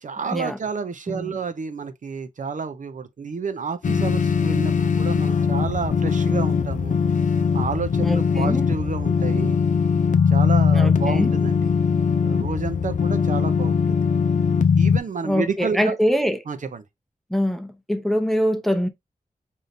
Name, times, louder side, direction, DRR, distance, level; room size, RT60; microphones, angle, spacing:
voice 1, 0.0-7.0 7.5-9.6 10.3-11.7 12.2-13.9 14.8-16.0 16.5-16.8, right 5 dB, 65° right, 0.6 m, -30 dB
sound 1, 3.8-15.0, left 6 dB, 65° left, 0.5 m, -20 dB
voice 2, 8.0-8.7 10.7-11.3 15.2-16.4 17.3-18.9, equal, ahead, 0.7 m, -24 dB
5.0 x 2.7 x 2.6 m
wide cardioid pair, 70°, 14 cm